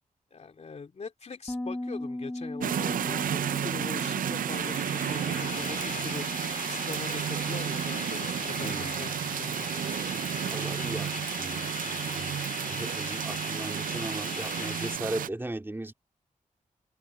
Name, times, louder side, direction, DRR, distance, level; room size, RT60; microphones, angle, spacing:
voice 1, 0.3-6.3 6.7-9.7, left 5 dB, 50° left, 2.9 m, -42 dB
Bass guitar, 1.5-10.8, left 1 dB, 15° left, 3.4 m, -41 dB
sound 1, 2.6-15.3, right 9 dB, 85° right, 0.5 m, -32 dB
sound 2, 4.5-15.0, left 7 dB, 90° left, 3.8 m, -39 dB
voice 2, 8.6-9.0 10.5-15.9, right 1 dB, 15° right, 2.9 m, -38 dB
wide cardioid pair, 95°, 14 cm